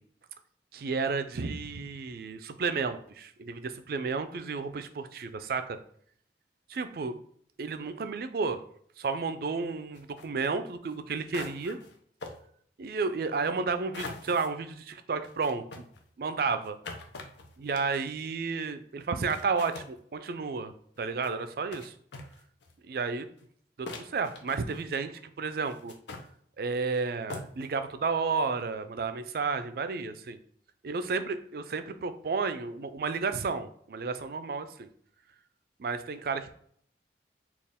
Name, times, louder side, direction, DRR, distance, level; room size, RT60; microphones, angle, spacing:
voice 1, 0.7-5.8 6.7-7.2 7.6-8.6 9.0-11.8 12.8-15.8 16.2-16.8 17.6-20.7 21.0-21.9 22.8-23.3 23.8-25.9 26.6-30.4 30.8-34.9 35.8-36.5, right 4 dB, 55° right, 10 dB, 0.3 m, -32 dB
sound 1, 9.9-10.3 10.9-11.0 11.3-11.9 12.2-12.4 13.9-14.5 15.2-18.2 19.0-19.1 19.3-19.9 21.0-21.3 21.7-21.9 22.1-22.7 23.4-23.5 23.9-24.9 25.6-26.3 26.9-27.0 27.3-27.7, left 3 dB, 80° left, 0.6 m, -43 dB
4.2 x 2.4 x 3.5 m, 0.62 s
head